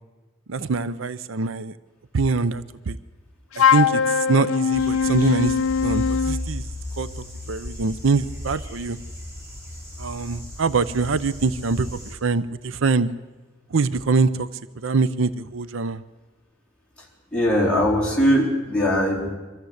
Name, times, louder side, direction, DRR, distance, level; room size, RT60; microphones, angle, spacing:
voice 1, 0.5-1.7 2.1-3.0 3.6-5.5 5.8-6.7 7.0-9.0 10.0-13.1 13.7-14.5 14.8-16.0, right 4 dB, 70° right, 15 dB, 0.6 m, -24 dB
Wind instrument woodwind instrument, 3.6-6.4, left 6 dB, 80° left, 0.5 m, -21 dB
sound 1, 4.7-12.1, left 1 dB, 10° right, 3.8 m, -35 dB
voice 2, 17.3-19.3, equal, 5° left, -4 dB, 4.1 m, -20 dB
23.0 x 14.5 x 8.0 m, 1.2 s
head